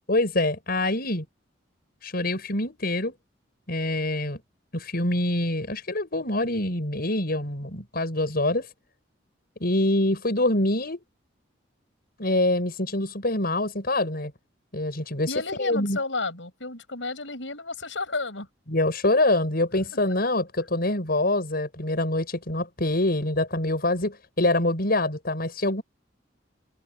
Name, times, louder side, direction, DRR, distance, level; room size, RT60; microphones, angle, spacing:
voice 1, 0.1-1.3 2.0-3.1 3.7-4.4 4.7-8.7 9.6-11.0 12.2-14.3 14.7-15.3 15.6-16.0 18.7-25.8, left 1 dB, 55° left, 7.2 m, -25 dB
voice 2, 15.3-18.5, left 3 dB, 85° left, 6.8 m, -32 dB
head